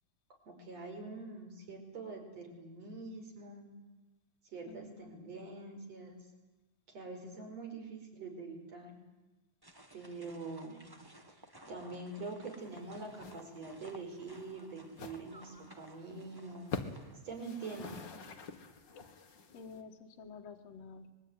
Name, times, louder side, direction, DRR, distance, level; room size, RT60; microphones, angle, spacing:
voice 1, 0.5-3.7 4.4-6.2 6.9-9.0 9.9-10.8 11.3-16.7 17.2-18.0, right 3 dB, 55° right, 3 dB, 6.1 m, -45 dB
voice 2, 4.7-5.4 19.5-21.1, left 4 dB, 60° left, 3 dB, 2.6 m, -50 dB
sound 1, 9.6-18.1, right 1 dB, 10° right, 1.2 m, -57 dB
sound 2, 12.6-12.8 13.1-13.4 13.7-13.8 14.3-14.4 14.9-15.2 15.7-15.8 16.0-16.2 16.6-17.0 17.3-19.8, left 4 dB, 40° left, 2.0 m, -45 dB
25.0 x 21.5 x 9.7 m, 1.1 s
omnidirectional pair, 3.6 m